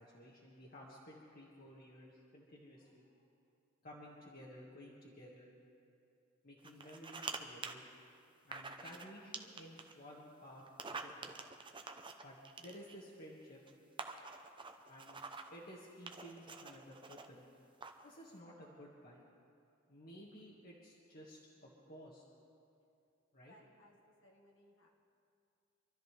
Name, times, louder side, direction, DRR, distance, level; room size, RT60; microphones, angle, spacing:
voice 1, 0.0-3.1 3.8-5.5 6.4-7.8 8.4-11.3 12.2-13.6 14.9-15.2 15.5-17.5 18.0-19.2 19.9-22.3 23.3-23.6, equal, 45° left, -5 dB, 1.9 m, -54 dB
sound 1, 6.6-7.4 7.6-7.7 8.5-9.1 9.3-9.9 10.7-13.0 13.7-13.8 14.0-15.6 16.1-17.3 17.8-18.1, right 4 dB, 25° right, 0.8 m, -46 dB
voice 2, 23.5-24.9, left 1 dB, 65° left, -1 dB, 1.6 m, -65 dB
26.0 x 13.0 x 3.4 m, 2.6 s
head